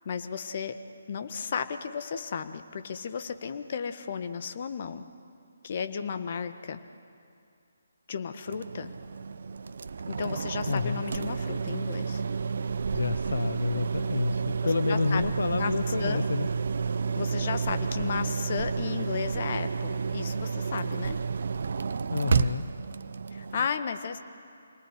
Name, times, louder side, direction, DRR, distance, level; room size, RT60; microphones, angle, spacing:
voice 1, 0.0-0.8 1.1-5.1 5.6-6.8 8.1-8.9 10.1-12.2 14.9-15.2 15.5-16.2 17.2-21.2 23.3-24.2, left 6 dB, 45° left, 9 dB, 1.5 m, -34 dB
sound 1, 8.5-23.7, right 5 dB, 55° right, 0.8 m, -30 dB
voice 2, 10.7-11.0 12.9-16.5 22.1-22.7, left 4 dB, 65° left, 11 dB, 0.8 m, -29 dB
28.0 x 20.0 x 9.8 m, 2.4 s
figure-of-eight pair, 145°, 0 cm